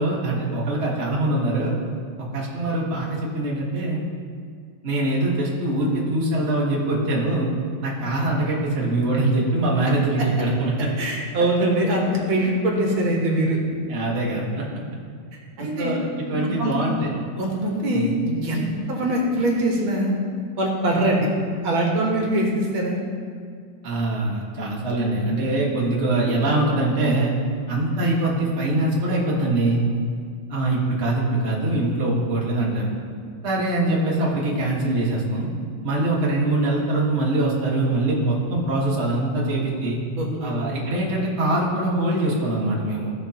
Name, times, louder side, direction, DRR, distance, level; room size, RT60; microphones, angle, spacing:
voice 1, 0.0-1.7 2.2-4.0 4.8-7.5 7.8-10.9 12.4-12.5 13.9-14.6 15.6-17.1 17.9-18.1 23.8-27.3 27.7-29.8 30.5-32.9 33.4-35.5 35.8-40.0 40.4-43.1, right 2 dB, 35° right, -4 dB, 1.5 m, -23 dB
voice 2, 11.0-13.6 15.6-16.0 16.3-16.9 17.4-20.2 20.6-21.3 21.6-23.0 40.2-40.6, right 1 dB, 75° right, -1 dB, 2.0 m, -23 dB
15.0 x 5.2 x 2.8 m, 2.2 s
omnidirectional pair, 2.2 m